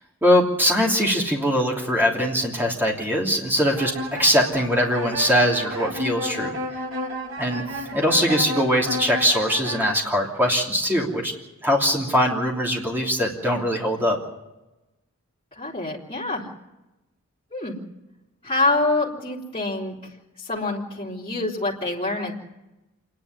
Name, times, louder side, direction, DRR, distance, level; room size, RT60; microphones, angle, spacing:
voice 1, 0.2-3.9 4.2-6.5 7.4-11.3 11.6-14.2, equal, 10° right, -2 dB, 3.0 m, -21 dB
sound 1, 3.7-10.0, equal, 55° right, 2.5 m, -32 dB
voice 2, 15.6-16.4 17.5-17.8 18.4-20.0 20.4-22.3, left 2 dB, 25° left, -5 dB, 3.6 m, -26 dB
27.0 x 10.5 x 9.7 m, 1.0 s
head